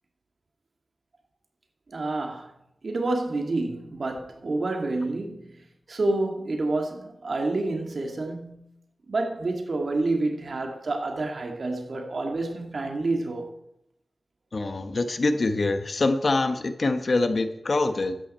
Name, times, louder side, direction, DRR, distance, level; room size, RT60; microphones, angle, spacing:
voice 1, 1.9-2.5 2.8-8.7 9.1-13.5, right 2 dB, 65° right, 2.4 m, -28 dB
voice 2, 14.5-18.2, left 2 dB, 60° left, 1.3 m, -25 dB
13.0 x 10.0 x 4.4 m
cardioid pair, 55°, 0 cm